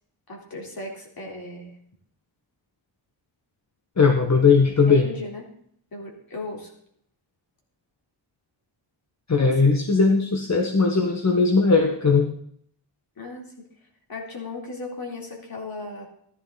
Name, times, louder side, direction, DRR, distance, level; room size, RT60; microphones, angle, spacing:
voice 1, 0.3-1.7 4.9-5.4 5.9-6.7 9.4-9.5 13.2-13.6 14.1-16.0, left 2 dB, 50° left, -1 dB, 3.9 m, -36 dB
voice 2, 4.0-5.1 9.3-12.3, left 4 dB, 35° left, 3 dB, 1.3 m, -19 dB
15.0 x 12.5 x 4.1 m, 0.66 s
wide cardioid pair, 145°, 44 cm